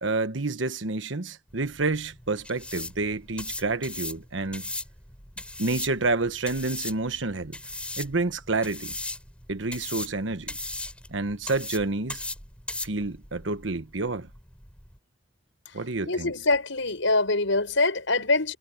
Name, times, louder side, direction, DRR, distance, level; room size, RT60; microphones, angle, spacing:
voice 1, 0.0-4.7 5.6-7.6 8.0-8.9 9.5-10.6 11.1-12.2 12.8-14.3 15.7-16.3, right 3 dB, 80° right, 1.3 m, -29 dB
sound 1, 1.5-15.0, left 2 dB, 5° left, 4.0 m, -38 dB
voice 2, 15.7-18.6, left 3 dB, 85° left, 6.4 m, -25 dB
head